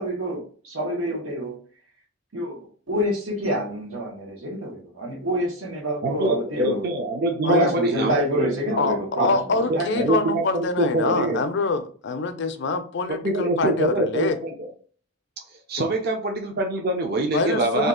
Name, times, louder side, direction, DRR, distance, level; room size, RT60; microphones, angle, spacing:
voice 1, 0.0-1.6 2.3-2.6 2.9-6.9 7.5-10.1, equal, 90° right, 1.0 m, -27 dB
voice 2, 6.0-8.2 8.7-8.8 9.2-9.3 9.7-11.4 13.1-14.5 15.7-17.9, right 2 dB, 50° right, 0.5 m, -24 dB
voice 3, 8.8-14.4 17.3-17.9, left 3 dB, 60° left, 0.4 m, -25 dB
2.7 x 2.3 x 3.6 m
head